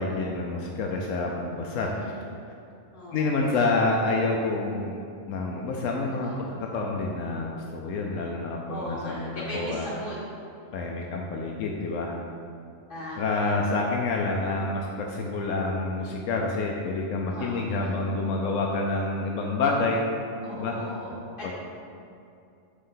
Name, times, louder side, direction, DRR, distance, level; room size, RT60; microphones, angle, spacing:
voice 1, 0.0-1.9 3.1-5.0 5.3-9.9 10.7-12.2 13.2-20.1 20.5-20.8 21.4-21.5, left 3 dB, 85° left, 0 dB, 1.0 m, -28 dB
voice 2, 1.8-2.3 2.9-3.7 6.0-6.4 8.7-10.2 12.9-14.4 17.3-17.9 20.4-21.1, equal, 45° left, -8 dB, 1.8 m, -39 dB
5.5 x 3.6 x 5.5 m, 2.5 s
omnidirectional pair, 1.3 m